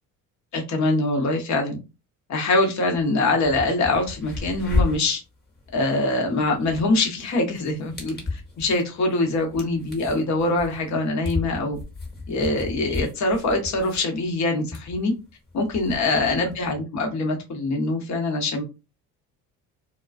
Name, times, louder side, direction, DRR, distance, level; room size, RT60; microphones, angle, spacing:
voice 1, 0.5-1.8 2.3-5.2 5.7-11.8 12.3-15.1 15.5-18.6, left 2 dB, 40° left, 3 dB, 1.0 m, -24 dB
sound 1, 2.9-3.0 3.4-16.7, left 3 dB, 20° left, 1.3 m, -33 dB
2.3 x 2.2 x 2.4 m, 0.28 s
hypercardioid pair, 60°, 43 cm